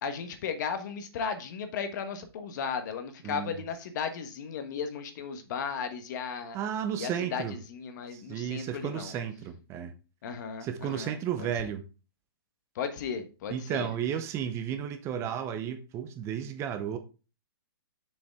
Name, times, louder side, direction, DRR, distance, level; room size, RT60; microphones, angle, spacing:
voice 1, 0.0-6.6 7.0-9.1 10.2-11.1 11.4-11.5 12.7-13.9, left 6 dB, 50° left, 1.2 m, -35 dB
voice 2, 3.2-3.6 6.5-7.6 8.1-9.9 10.6-11.9 13.5-17.0, right 9 dB, 20° right, 0.7 m, -33 dB
7.1 x 5.0 x 3.5 m
hypercardioid pair, 145°, 13 cm